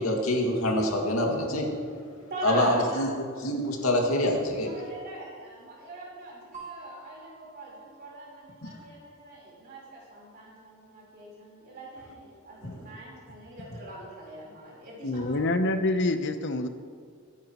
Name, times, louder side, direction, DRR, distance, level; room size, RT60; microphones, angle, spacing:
voice 1, 0.0-1.7 2.4-3.1 3.4-4.8 8.6-8.7, left 1 dB, 90° left, 0 dB, 2.3 m, -25 dB
voice 2, 2.3-3.0 4.6-15.4, right 2 dB, 50° right, -5 dB, 4.2 m, -41 dB
sound 1, 6.5-9.0, right 4 dB, 35° right, 1.9 m, -48 dB
voice 3, 15.0-16.7, left 2 dB, 60° left, 8 dB, 0.9 m, -26 dB
23.0 x 10.5 x 3.1 m, 2.1 s
head